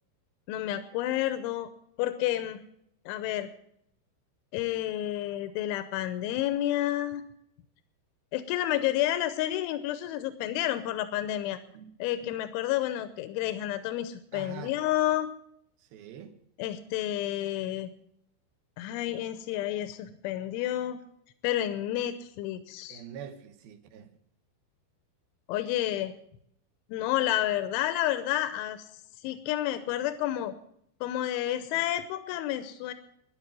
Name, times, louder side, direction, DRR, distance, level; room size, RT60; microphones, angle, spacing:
voice 1, 0.5-1.7 2.0-2.6 3.1-3.5 4.5-7.2 8.3-11.6 12.0-15.3 16.6-17.9 18.8-21.0 21.4-23.0 25.5-26.1 26.9-28.9 29.2-30.5 31.0-32.9, left 13 dB, 90° left, 3.3 m, -30 dB
voice 2, 14.3-14.7 15.8-16.3 22.9-24.1, right 8 dB, 65° right, 2.7 m, -45 dB
12.5 x 11.0 x 7.5 m
omnidirectional pair, 5.3 m